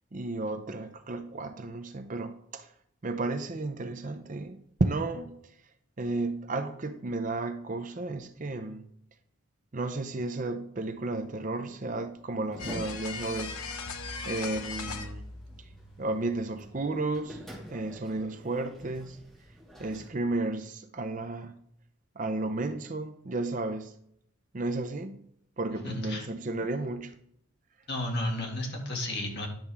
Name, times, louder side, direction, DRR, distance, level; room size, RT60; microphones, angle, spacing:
voice 1, 0.1-2.7 3.0-5.4 6.0-8.9 9.7-13.6 14.2-15.3 15.6-15.7 16.0-17.4 17.7-19.2 19.8-21.6 22.2-24.0 24.5-25.2 25.6-27.1, right 2 dB, 35° right, 0.6 m, -33 dB
sound 1, 10.8-20.1, equal, ahead, 2.6 m, -49 dB
sound 2, 12.6-16.0 16.2-16.3 17.1-17.2, left 4 dB, 90° left, 0.9 m, -38 dB
voice 2, 25.8-26.3 27.9-29.5, left 1 dB, 50° left, 2.0 m, -32 dB
10.5 x 6.9 x 3.5 m
head